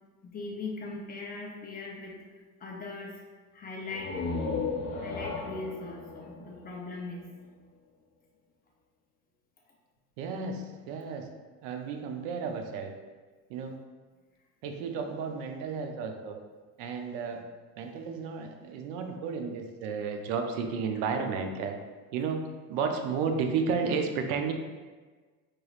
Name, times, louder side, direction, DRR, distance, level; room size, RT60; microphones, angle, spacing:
voice 1, 0.2-2.2 2.6-3.2 3.5-4.3 5.0-7.3, left 3 dB, 25° left, -1 dB, 0.6 m, -39 dB
sound 1, 3.9-7.5, left 4 dB, 65° left, 1.1 m, -35 dB
voice 2, 10.2-11.3 11.6-12.9 13.5-13.8 14.6-16.4 16.8-17.4 17.8-21.8 22.1-24.5, right 5 dB, 90° right, 5 dB, 0.6 m, -32 dB
4.7 x 3.0 x 2.4 m, 1.4 s
cardioid pair, 140°, 38 cm